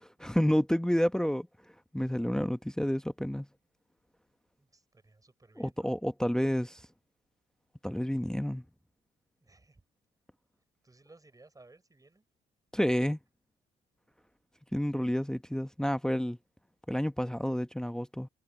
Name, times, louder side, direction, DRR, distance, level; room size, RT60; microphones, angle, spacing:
voice 1, 0.0-1.5 1.9-3.5 5.6-6.8 7.8-8.6 12.7-13.2 14.7-16.4 16.9-18.3, equal, 5° left, 1.1 m, -29 dB
voice 2, 4.6-5.9 9.4-9.8 10.8-12.3, right 2 dB, 15° right, 6.1 m, -59 dB
cardioid pair, 90°, 20 cm